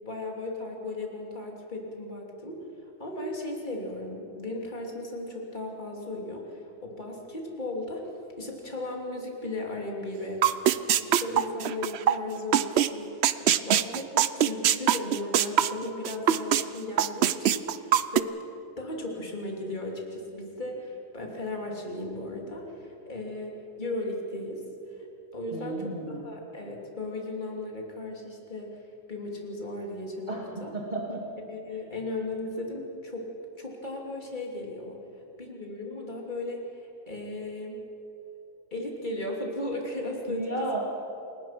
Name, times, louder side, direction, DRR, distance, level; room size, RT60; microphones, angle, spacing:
voice 1, 0.0-2.7 3.0-18.3 18.8-24.6 24.9-25.1 25.3-28.8 29.1-30.7 31.5-33.3 33.6-35.0 35.4-37.8 38.7-40.5, left 2 dB, 25° left, 0 dB, 3.2 m, -36 dB
sound 1, 10.4-12.1 12.5-12.9 13.2-16.6 17.0-18.2, right 10 dB, 75° right, 0.6 m, -22 dB
voice 2, 25.5-26.2 30.3-31.2 40.3-40.8, right 2 dB, 25° right, -3 dB, 2.4 m, -33 dB
29.0 x 19.0 x 6.0 m, 2.9 s
omnidirectional pair, 1.8 m